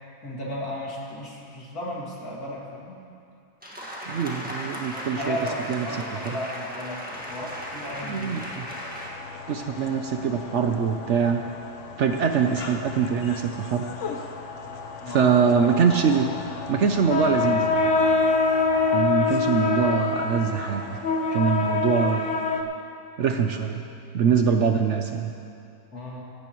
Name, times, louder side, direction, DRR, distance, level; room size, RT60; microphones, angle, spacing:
voice 1, 0.2-3.0 4.9-8.4 15.0-15.4 25.9-26.2, left 1 dB, 75° left, -4 dB, 2.9 m, -34 dB
sound 1, 3.6-9.1, equal, 5° right, 1.5 m, -36 dB
voice 2, 4.0-5.4 5.7-5.9 8.0-8.6 9.5-11.4 12.0-13.9 15.1-16.3 16.7-17.8 18.9-20.8 21.3-22.3 23.2-23.9 24.1-25.3, right 6 dB, 60° right, 5 dB, 0.9 m, -23 dB
sound 2, 7.2-22.6, left 4 dB, 55° left, 1.1 m, -28 dB
17.0 x 15.5 x 3.1 m, 2.5 s
omnidirectional pair, 1.6 m